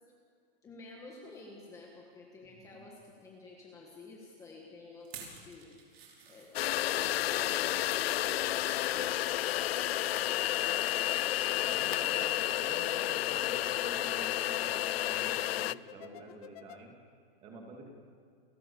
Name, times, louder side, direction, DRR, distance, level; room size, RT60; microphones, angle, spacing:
voice 1, 0.6-5.7 6.3-11.1, left 3 dB, 10° left, -1 dB, 1.6 m, -52 dB
voice 2, 2.5-2.9 8.9-9.1 11.7-16.9 17.4-17.9, right 2 dB, 20° right, 2 dB, 2.6 m, -49 dB
sound 1, 5.0-7.6 8.2-8.8 9.2-10.9 11.2-11.4 11.8-11.9, right 6 dB, 85° right, 5.8 m, -53 dB
sound 2, 6.5-15.7, left 14 dB, 80° left, 0.5 m, -31 dB
sound 3, 10.5-16.8, left 13 dB, 40° left, 0.7 m, -51 dB
29.0 x 13.5 x 7.1 m, 2.3 s
supercardioid pair, 175°, 30 cm